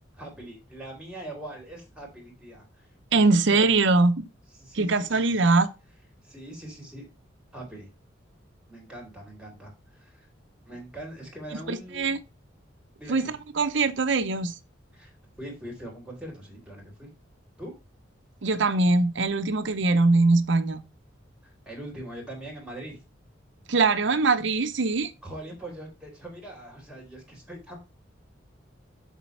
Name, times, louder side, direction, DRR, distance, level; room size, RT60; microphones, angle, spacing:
voice 1, 0.2-2.6 3.3-3.9 4.6-5.3 6.2-7.0 7.5-7.9 8.7-9.7 10.0-10.3 10.7-12.1 13.0-13.4 14.9-15.1 15.4-17.1 17.6-17.7 21.4-23.0 25.2-27.8, right 1 dB, 5° right, 3.8 m, -42 dB
voice 2, 3.1-4.3 4.7-5.7 11.7-12.2 13.1-14.5 18.4-20.8 23.7-25.1, right 3 dB, 65° right, 0.7 m, -22 dB
7.4 x 4.1 x 5.5 m
head